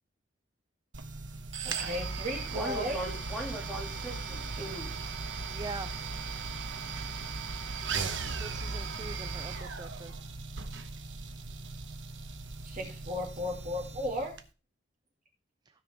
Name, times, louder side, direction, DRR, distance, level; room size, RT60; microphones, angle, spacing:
sound 1, 0.9-14.4, right 4 dB, 70° right, 0.9 m, -38 dB
voice 1, 1.6-3.0 7.0-7.1 12.6-14.3, left 1 dB, 45° right, 1 dB, 2.6 m, -35 dB
voice 2, 2.5-4.9, right 1 dB, 5° left, -1 dB, 2.3 m, -39 dB
voice 3, 5.5-5.9 8.3-10.1, right 3 dB, 20° right, 11 dB, 0.3 m, -42 dB
16.0 x 5.3 x 3.5 m, 0.33 s
head